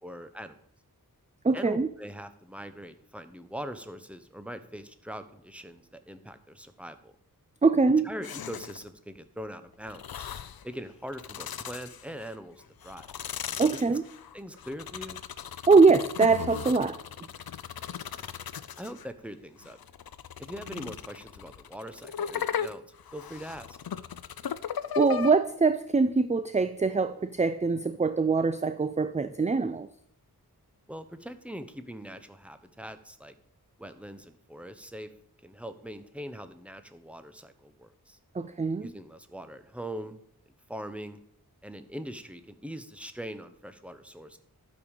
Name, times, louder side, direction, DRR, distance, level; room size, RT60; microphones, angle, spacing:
voice 1, 0.0-0.6 1.5-7.1 8.0-10.3 10.6-13.1 13.7-14.0 14.3-15.2 18.8-19.8 20.4-22.8 23.1-23.8 30.9-33.3 33.8-35.1 35.4-38.2 38.8-40.2 40.7-41.2 41.6-44.4, equal, 5° right, 9 dB, 0.9 m, -42 dB
voice 2, 1.4-1.9 7.6-8.1 13.6-14.0 15.7-17.0 25.0-29.9 38.3-38.9, right 4 dB, 20° right, 12 dB, 0.4 m, -23 dB
sound 1, 8.2-8.9 9.9-10.6 11.1-12.3 12.8-19.1 19.6-25.3, left 8 dB, 70° left, 0.5 m, -37 dB
12.0 x 5.3 x 6.5 m, 0.69 s
wide cardioid pair, 60°, 37 cm